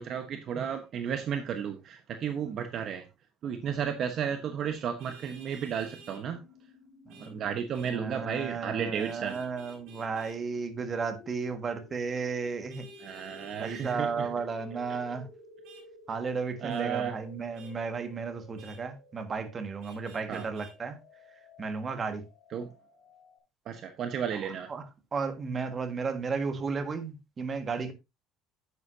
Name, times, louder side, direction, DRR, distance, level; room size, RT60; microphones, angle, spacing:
voice 1, 0.0-3.1 3.4-6.4 7.2-9.4 13.0-14.3 16.6-17.1 20.3-20.5 22.5-22.7 23.7-24.7, right 8 dB, 45° right, 1.0 m, -33 dB
sound 1, 4.9-23.4, left 4 dB, 40° left, 3.6 m, -54 dB
Vehicle horn car horn honking, 5.0-6.2 7.1-7.3 7.7-8.0 9.0-10.4 12.7-14.0 15.6-15.8 16.7-16.9 17.5-17.7 18.6-18.8 19.8-20.7, right 5 dB, 70° right, 3.3 m, -53 dB
voice 2, 7.1-7.4 7.8-12.9 13.6-15.3 16.1-21.0 21.6-22.2 24.4-27.9, right 5 dB, 25° right, 1.6 m, -34 dB
9.6 x 9.4 x 2.6 m
cardioid pair, 145°, 0 cm